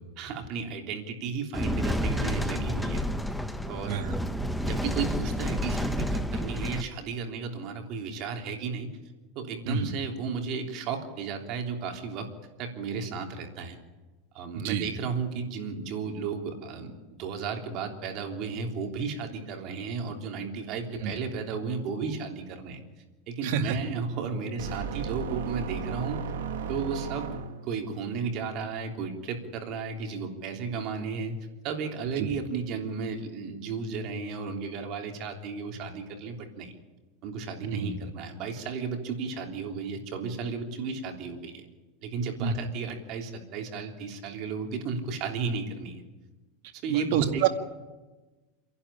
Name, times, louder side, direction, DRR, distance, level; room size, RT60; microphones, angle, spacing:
voice 1, 0.2-3.1 3.6-4.0 4.6-8.9 9.3-12.3 12.6-13.8 14.3-22.8 23.3-26.2 26.7-31.3 31.6-36.7 37.2-41.6 42.0-46.0 46.8-47.4, right 5 dB, 40° right, 3 dB, 3.3 m, -34 dB
sound 1, 1.5-6.8, equal, ahead, 0.8 m, -30 dB
voice 2, 23.4-23.8 32.2-32.3 37.7-37.9 42.4-42.5 46.9-47.5, right 8 dB, 60° right, 6 dB, 2.1 m, -27 dB
sound 2, 24.6-27.8, right 5 dB, 90° right, 2.2 m, -35 dB
28.0 x 11.5 x 10.0 m, 1.2 s
supercardioid pair, 155°, 0 cm